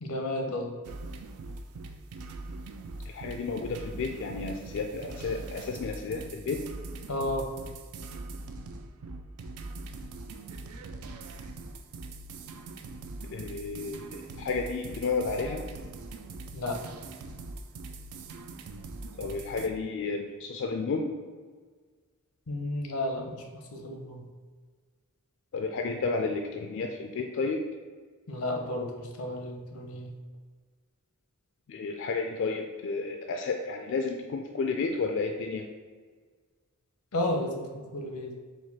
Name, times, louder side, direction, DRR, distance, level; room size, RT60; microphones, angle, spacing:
voice 1, 0.0-0.7 7.1-7.5 16.5-16.8 22.5-23.5 23.7-24.2 28.3-30.1 37.1-38.3, left 1 dB, 90° left, 3 dB, 0.7 m, -32 dB
sound 1, 0.8-19.7, right 2 dB, 80° right, 0.4 m, -42 dB
voice 2, 3.1-6.6 13.3-15.6 19.2-21.1 25.5-27.6 31.7-35.7, left 4 dB, 55° left, 3 dB, 0.3 m, -32 dB
4.7 x 2.2 x 4.1 m, 1.5 s
head